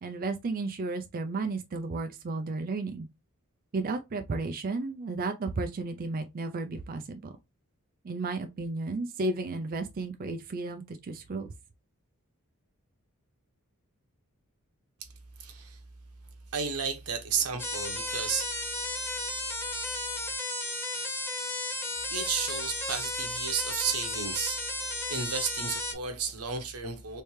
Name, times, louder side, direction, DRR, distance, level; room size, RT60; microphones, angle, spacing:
voice 1, 0.0-3.1 3.7-7.3 8.0-11.5, right 3 dB, 40° right, 0.4 m, -33 dB
voice 2, 15.4-15.8 16.5-18.5 22.1-27.2, right 6 dB, 90° right, 0.9 m, -33 dB
sound 1, 17.6-25.9, left 2 dB, 10° left, 0.8 m, -34 dB
3.3 x 3.2 x 3.1 m
head